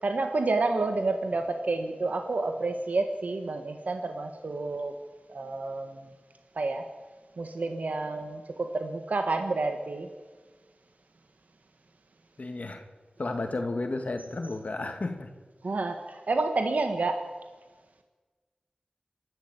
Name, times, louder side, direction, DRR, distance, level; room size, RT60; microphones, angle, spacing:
voice 1, 0.0-4.9 5.3-6.1 6.5-6.9 7.4-10.1 15.6-17.3, right 3 dB, 90° right, 6 dB, 1.5 m, -29 dB
voice 2, 12.4-12.8 13.2-15.3, left 2 dB, 70° left, 5 dB, 2.2 m, -32 dB
27.0 x 12.0 x 8.3 m, 1.4 s
wide cardioid pair, 50°, 3 cm